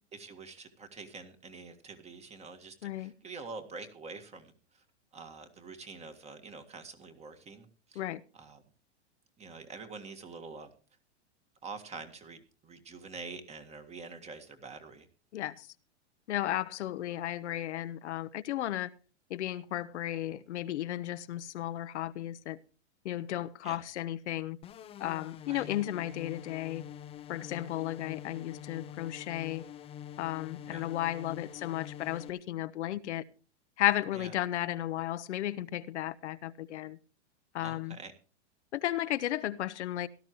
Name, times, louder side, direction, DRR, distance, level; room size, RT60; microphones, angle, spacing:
voice 1, 0.1-4.8 5.1-8.0 8.3-8.6 9.4-10.7 11.6-15.1 23.6-23.8 25.5-25.7 30.7-30.9 34.2-34.3 37.6-38.1, right 4 dB, 20° right, 1.8 m, -46 dB
voice 2, 2.8-3.1 8.0-8.2 15.3-15.7 16.3-18.9 19.3-22.6 23.0-24.6 25.0-26.8 27.3-29.6 30.2-33.2 33.8-37.0 37.5-38.0 38.7-40.1, left 13 dB, 75° left, 0.9 m, -34 dB
sound 1, 24.6-32.3, left 10 dB, 15° left, 0.6 m, -46 dB
17.5 x 12.5 x 3.1 m
hypercardioid pair, 130°, 35 cm